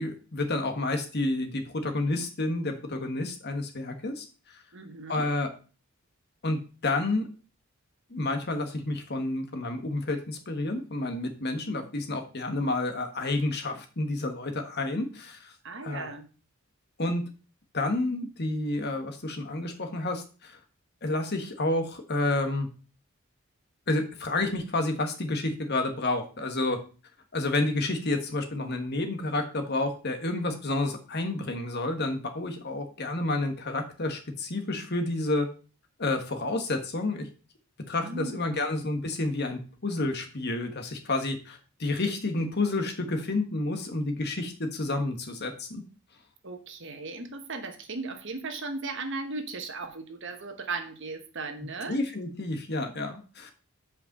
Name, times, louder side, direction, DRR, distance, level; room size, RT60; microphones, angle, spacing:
voice 1, 0.0-4.6 5.1-5.5 6.4-7.3 8.1-15.5 15.8-16.1 17.0-17.2 17.7-20.6 21.0-22.7 23.9-26.8 27.3-35.5 36.0-37.3 37.9-45.8 51.9-53.5, left 2 dB, 50° left, 6 dB, 1.4 m, -30 dB
voice 2, 4.7-5.3 15.6-16.3 38.0-38.7 46.4-52.0, right 3 dB, 55° right, 7 dB, 1.2 m, -37 dB
5.7 x 5.2 x 6.6 m, 0.35 s
head